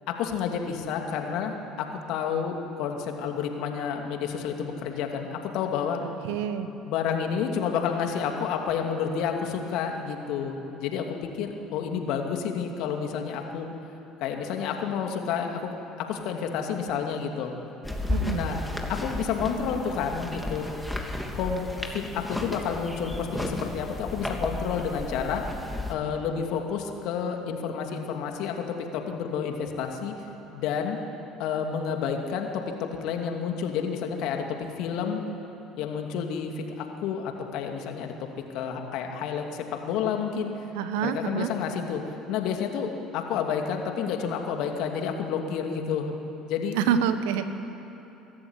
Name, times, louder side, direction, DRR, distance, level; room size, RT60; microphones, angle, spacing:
voice 1, 0.1-6.0 6.8-13.7 14.2-17.5 18.3-18.6 18.9-20.7 21.3-21.7 21.9-25.4 25.9-30.1 30.5-31.0 31.4-34.4 34.8-35.2 35.8-38.1 38.5-40.5 41.0-42.0 42.3-46.1 46.4-46.8, left 7 dB, 65° left, 3 dB, 2.6 m, -30 dB
voice 2, 6.2-6.7 18.1-18.4 40.7-41.5 46.7-47.4, right 8 dB, 75° right, 10 dB, 1.3 m, -27 dB
sound 1, 17.8-25.9, left 1 dB, 5° left, 3.1 m, -33 dB
24.0 x 13.5 x 9.8 m, 3.0 s
hypercardioid pair, 65°, 0 cm